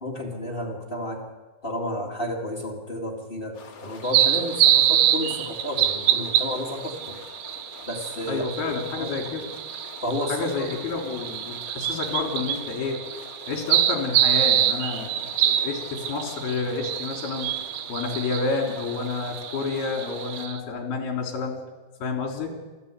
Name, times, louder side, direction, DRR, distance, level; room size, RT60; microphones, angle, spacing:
voice 1, 0.0-1.2 1.6-7.2 7.8-8.4 9.0-9.2 10.0-10.7, left 1 dB, 90° left, -2 dB, 0.5 m, -31 dB
sound 1, 3.5-20.5, left 4 dB, 45° left, 2.3 m, -45 dB
sound 2, 4.1-20.6, right 11 dB, 85° right, 3.3 m, -26 dB
voice 2, 8.3-9.5 10.3-13.0 13.5-17.5 17.9-21.5 22.0-22.5, left 4 dB, 60° left, 1 dB, 5.3 m, -29 dB
28.0 x 13.0 x 8.3 m, 1.3 s
omnidirectional pair, 5.2 m